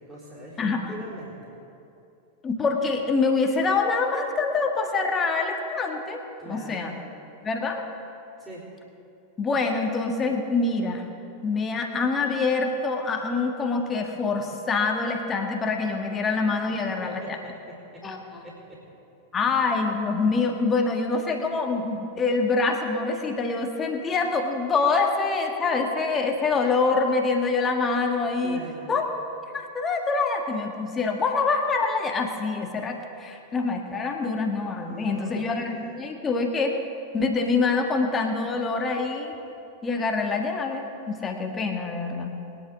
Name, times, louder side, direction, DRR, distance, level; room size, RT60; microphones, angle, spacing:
voice 1, 0.0-1.4 6.4-7.0 8.4-8.7 16.8-16.9 17.2-18.8 28.4-28.9 34.8-35.5 35.8-35.9, right 1 dB, 20° right, -10 dB, 3.9 m, -42 dB
voice 2, 2.4-6.9 7.4-7.8 9.4-11.1 11.4-17.4 18.0-18.2 19.3-28.6 28.9-29.1 29.5-36.7 37.1-39.4 39.8-42.4, left 4 dB, 20° left, 3 dB, 1.7 m, -25 dB
21.5 x 10.5 x 3.7 m, 2.7 s
figure-of-eight pair, 90°, 0 cm